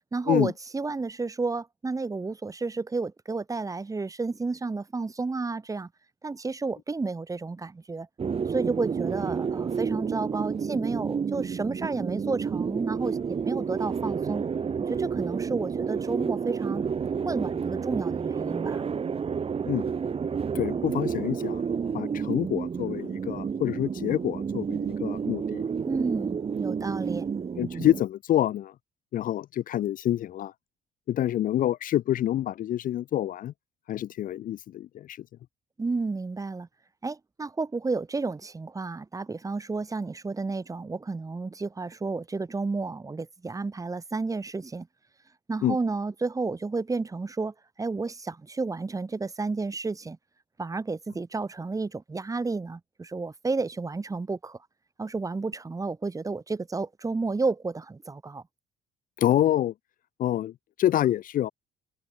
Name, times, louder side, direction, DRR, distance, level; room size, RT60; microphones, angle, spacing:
voice 1, 0.1-5.9 6.2-8.1 8.5-14.4 14.8-16.8 17.2-18.8 25.8-27.3 35.8-36.7 37.0-44.9 45.5-50.2 50.6-54.6 55.0-58.4, right 3 dB, 20° right, 3.0 m, -31 dB
sound 1, 8.2-28.0, right 6 dB, 35° right, 3.7 m, -30 dB
voice 2, 20.5-21.6 21.9-25.6 27.6-28.7 29.1-30.5 31.1-33.5 33.9-35.2 45.6-45.8 59.2-59.7 60.2-61.5, left 12 dB, 55° left, 0.6 m, -27 dB
cardioid pair, 110°, 17 cm